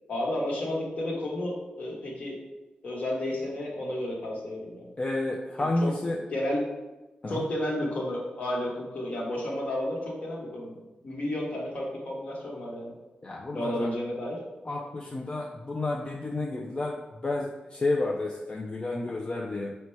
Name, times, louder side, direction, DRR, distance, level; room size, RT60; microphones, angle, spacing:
voice 1, 0.1-2.4 2.8-4.9 5.6-5.9 6.3-6.6 7.3-10.8 11.0-12.9 13.5-14.4, left 1 dB, 55° left, -3 dB, 1.2 m, -32 dB
voice 2, 5.0-6.2 7.2-7.4 13.2-13.9 14.7-19.7, left 2 dB, 35° left, -2 dB, 0.4 m, -31 dB
4.3 x 2.2 x 4.4 m, 1.1 s
cardioid pair, 80°, 3 cm